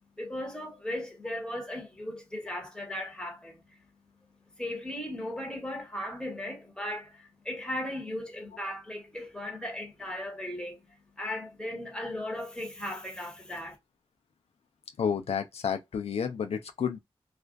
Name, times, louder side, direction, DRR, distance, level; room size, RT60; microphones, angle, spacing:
voice 1, 0.2-3.6 4.6-13.8, left 1 dB, 10° left, 1.4 m, -37 dB
voice 2, 15.0-17.0, left 7 dB, 75° left, 0.4 m, -30 dB
2.4 x 2.4 x 2.2 m
cardioid pair, 60°, 10 cm